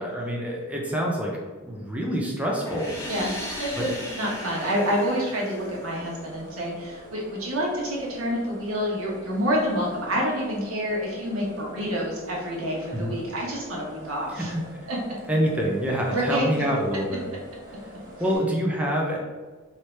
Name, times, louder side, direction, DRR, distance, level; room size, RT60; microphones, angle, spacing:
voice 1, 0.0-1.3 1.6-2.9 3.8-3.9 12.9-13.1 14.3-14.6 15.3-17.3 18.2-19.2, equal, 5° right, -2 dB, 0.5 m, -26 dB
sound 1, 2.6-6.4, left 1 dB, 10° left, 1.2 m, -36 dB
voice 2, 4.2-14.5 14.9-15.0 16.1-16.5, equal, 85° right, -3 dB, 1.2 m, -28 dB
sound 2, 5.6-18.4, equal, 35° right, 1.2 m, -45 dB
3.3 x 2.8 x 4.4 m, 1.3 s
head